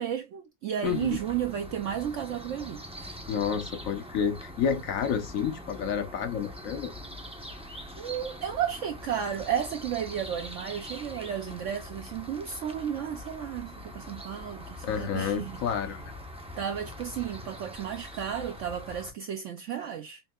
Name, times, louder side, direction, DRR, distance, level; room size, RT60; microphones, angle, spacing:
voice 1, 0.0-2.8 8.0-15.6 16.6-20.2, right 9 dB, 70° right, 0.7 m, -33 dB
voice 2, 0.8-1.2 3.3-6.9 14.8-16.1, left 7 dB, 65° left, 0.9 m, -30 dB
sound 1, 0.8-19.1, left 1 dB, 10° right, 0.3 m, -43 dB
5.3 x 2.7 x 2.3 m
omnidirectional pair, 1.7 m